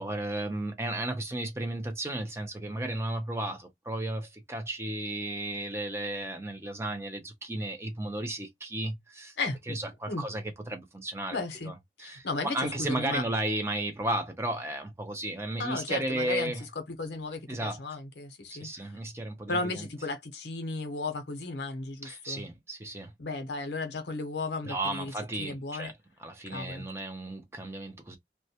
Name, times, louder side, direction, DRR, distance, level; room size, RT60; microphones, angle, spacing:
voice 1, 0.0-9.3 9.7-11.4 11.7-16.6 17.5-17.8 18.5-19.9 22.0-23.1 24.6-25.9 26.2-28.2, right 1 dB, 15° right, 0.5 m, -34 dB
voice 2, 9.4-9.8 10.1-10.2 11.3-11.7 12.0-13.2 15.6-16.5 17.0-18.9 19.5-22.4 23.2-25.1 25.4-25.9 26.5-26.9, left 3 dB, 70° left, 0.7 m, -34 dB
2.2 x 2.1 x 2.7 m
head